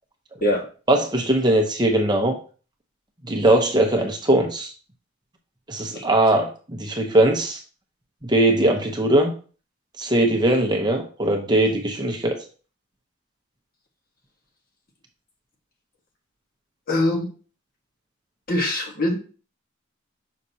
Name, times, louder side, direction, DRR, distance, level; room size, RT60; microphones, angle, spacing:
voice 1, 0.9-2.4 3.3-4.7 5.7-7.6 8.2-9.3 10.0-12.4, right 1 dB, 20° right, 2 dB, 0.9 m, -20 dB
voice 2, 16.9-17.3 18.5-19.2, left 1 dB, 45° left, 1 dB, 1.5 m, -22 dB
6.3 x 5.8 x 2.8 m, 0.38 s
head